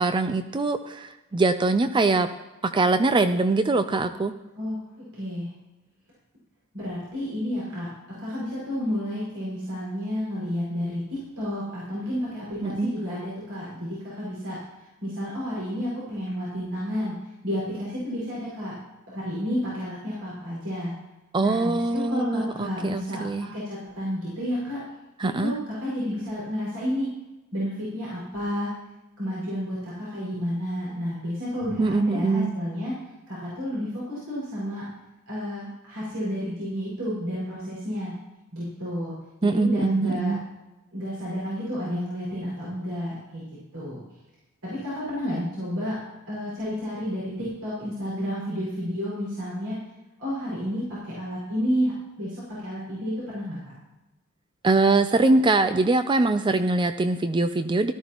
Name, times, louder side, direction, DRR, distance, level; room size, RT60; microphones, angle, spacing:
voice 1, 0.0-2.3 2.6-4.3 12.6-12.9 21.3-23.5 25.2-25.5 31.8-32.5 39.4-40.4 54.6-57.9, right 3 dB, 20° right, 10 dB, 0.4 m, -23 dB
voice 2, 4.6-5.5 6.7-14.6 15.0-17.2 17.4-18.8 19.1-20.9 21.4-24.8 25.2-27.1 27.5-28.7 29.2-32.9 33.3-34.9 35.3-38.2 38.5-40.4 40.9-43.4 43.7-44.0 44.6-46.0 46.3-49.8 50.2-51.9 52.2-53.6, equal, 90° right, -8 dB, 5.6 m, -31 dB
17.5 x 13.0 x 3.0 m, 1.0 s
head